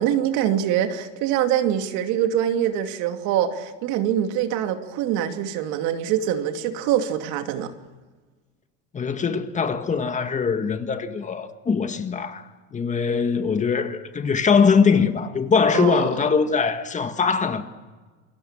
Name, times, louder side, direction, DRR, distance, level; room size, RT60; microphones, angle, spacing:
voice 1, 0.0-7.7 15.7-16.1, right 10 dB, 60° right, 2.6 m, -24 dB
voice 2, 8.9-17.6, left 5 dB, 20° left, 1.8 m, -22 dB
28.0 x 22.0 x 7.4 m
supercardioid pair, 125°, 34 cm